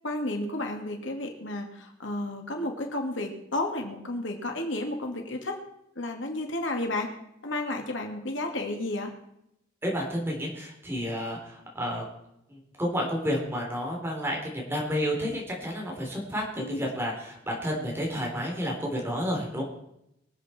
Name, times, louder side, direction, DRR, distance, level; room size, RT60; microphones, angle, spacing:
voice 1, 0.0-5.6 6.0-7.1 7.4-9.1 16.6-16.8, left 2 dB, 90° left, 3 dB, 2.4 m, -32 dB
voice 2, 9.8-12.0 12.5-19.6, equal, 15° right, -2 dB, 3.6 m, -31 dB
23.5 x 8.3 x 4.5 m, 0.81 s
head